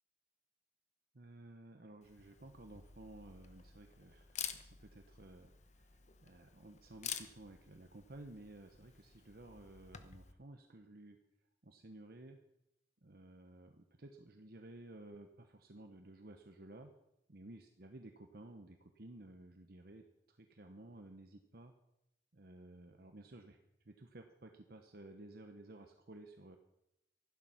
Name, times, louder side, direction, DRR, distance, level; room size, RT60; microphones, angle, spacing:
voice 1, 1.1-11.2 11.6-12.4 13.0-16.9 17.3-21.7 22.3-23.6 23.8-26.6, right 2 dB, 60° right, 5 dB, 1.1 m, -55 dB
Camera, 2.0-10.3, left 8 dB, 40° left, 1.0 m, -50 dB
14.5 x 12.0 x 5.7 m, 0.84 s
head